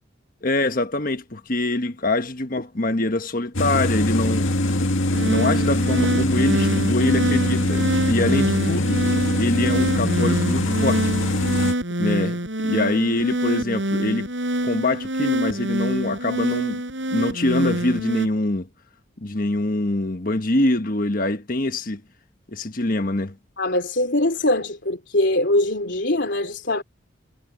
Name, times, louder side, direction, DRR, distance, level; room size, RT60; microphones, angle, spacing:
voice 1, 0.4-4.5 5.2-9.0 9.4-11.1 12.0-12.4 12.6-14.3 14.6-16.8 17.1-18.7 19.2-22.0 22.5-23.4, left 2 dB, 45° left, 1.4 m, -24 dB
sound 1, 3.5-11.7, left 1 dB, 90° left, 2.1 m, -23 dB
sound 2, 5.1-18.3, right 1 dB, 70° right, 6.9 m, -25 dB
voice 2, 23.6-26.8, left 1 dB, 60° left, 3.5 m, -22 dB
head